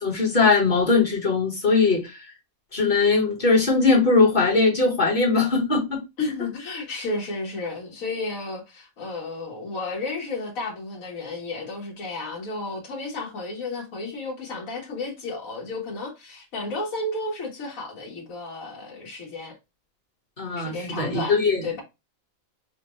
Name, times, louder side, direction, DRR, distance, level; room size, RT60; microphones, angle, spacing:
voice 1, 0.0-2.3 2.7-6.0 20.4-21.6, left 4 dB, 35° left, 1.4 m, -20 dB
voice 2, 6.2-19.6 20.6-21.8, left 2 dB, 75° left, 1.7 m, -32 dB
5.1 x 2.3 x 3.0 m
omnidirectional pair, 1.5 m